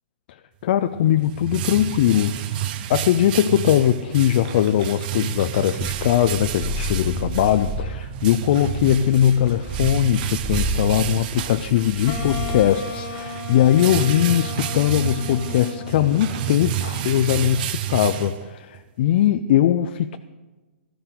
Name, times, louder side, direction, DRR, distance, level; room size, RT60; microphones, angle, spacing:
voice 1, 0.6-2.6 2.9-20.2, left 11 dB, 55° left, 9 dB, 0.5 m, -20 dB
sound 1, 0.9-18.8, right 12 dB, 50° right, 0.8 m, -30 dB
Purr, 5.8-12.7, right 2 dB, 30° right, 4.1 m, -31 dB
Wind instrument woodwind instrument, 12.1-17.1, left 5 dB, 40° left, 1.5 m, -35 dB
15.0 x 13.0 x 3.9 m, 1.2 s
hypercardioid pair, 135°, 6 cm